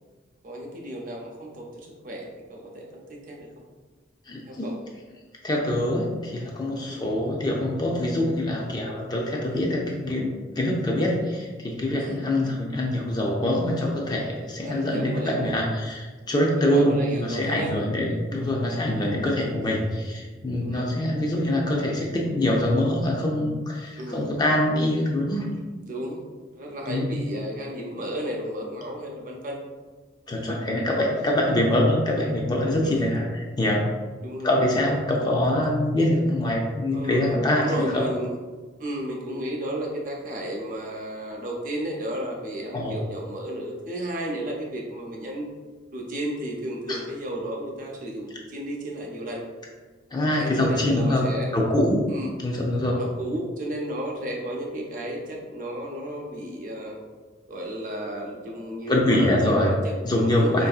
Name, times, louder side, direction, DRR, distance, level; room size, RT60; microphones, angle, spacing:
voice 1, 0.4-3.6 4.5-4.8 6.3-6.4 6.8-7.0 9.5-9.6 12.0-12.2 14.6-15.5 16.6-17.7 19.6-19.8 20.6-20.9 24.0-24.3 25.8-26.2 26.5-29.6 30.6-31.1 32.8-33.0 34.2-34.9 36.9-38.4 38.8-45.5 45.9-49.4 50.3-51.6 52.1-52.3 53.0-57.0 57.5-60.7, equal, 45° right, 0 dB, 0.5 m, -33 dB
voice 2, 4.3-4.7 5.4-10.3 10.6-25.5 26.9-27.2 30.3-33.8 34.4-38.0 42.7-43.0 46.9-47.0 50.1-51.3 51.5-52.0 52.4-53.0 58.9-59.7 60.0-60.7, left 1 dB, 20° left, -1 dB, 0.3 m, -24 dB
4.4 x 2.6 x 2.3 m, 1.4 s
head